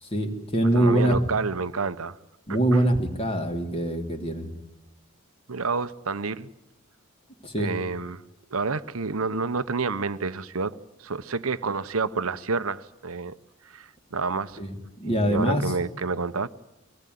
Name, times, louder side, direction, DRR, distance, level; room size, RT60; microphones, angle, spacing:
voice 1, 0.0-1.2 2.5-4.5 7.4-7.7 14.6-15.7, right 1 dB, 25° left, 3.0 m, -24 dB
voice 2, 0.7-2.2 2.7-2.8 5.5-6.5 7.6-8.2 8.5-13.3 13.7-14.6 15.1-16.5, right 4 dB, 80° right, 1.0 m, -29 dB
24.0 x 18.0 x 9.4 m
head